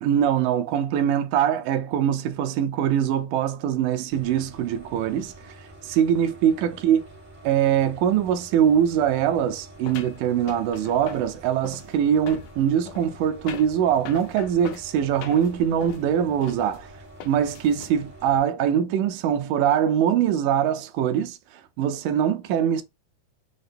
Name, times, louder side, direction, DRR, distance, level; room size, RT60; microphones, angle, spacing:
voice 1, 0.0-7.0 7.4-16.9 17.3-22.8, right 9 dB, 80° right, 1.9 m, -23 dB
sound 1, 4.1-18.4, right 2 dB, 20° right, 0.8 m, -47 dB
sound 2, 9.8-17.9, left 8 dB, 80° left, 2.2 m, -42 dB
6.4 x 2.2 x 2.5 m
omnidirectional pair, 3.8 m